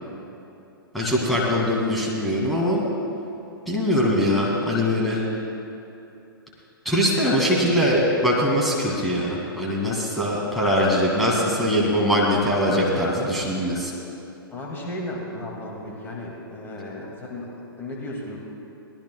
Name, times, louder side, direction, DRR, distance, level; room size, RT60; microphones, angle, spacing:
voice 1, 0.9-2.9 3.7-5.2 6.8-13.9, equal, ahead, -5 dB, 2.2 m, -22 dB
voice 2, 14.5-18.4, left 1 dB, 15° left, -2 dB, 2.3 m, -35 dB
23.0 x 18.0 x 2.3 m, 2.7 s
figure-of-eight pair, 110°, 12 cm